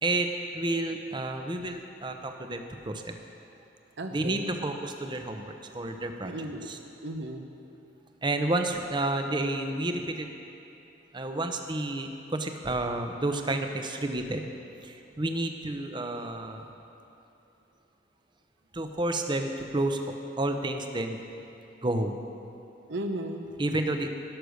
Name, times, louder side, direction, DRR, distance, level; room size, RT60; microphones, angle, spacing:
voice 1, 0.0-3.1 4.1-6.3 6.7-6.8 8.2-10.3 11.1-14.5 14.8-16.6 18.7-21.2 21.8-22.2 23.6-24.1, right 2 dB, 25° right, 6 dB, 0.8 m, -30 dB
voice 2, 4.0-4.5 6.2-6.7 7.0-7.4 22.9-23.5, right 1 dB, 65° right, 4 dB, 0.9 m, -35 dB
16.5 x 6.7 x 6.5 m, 2.9 s
head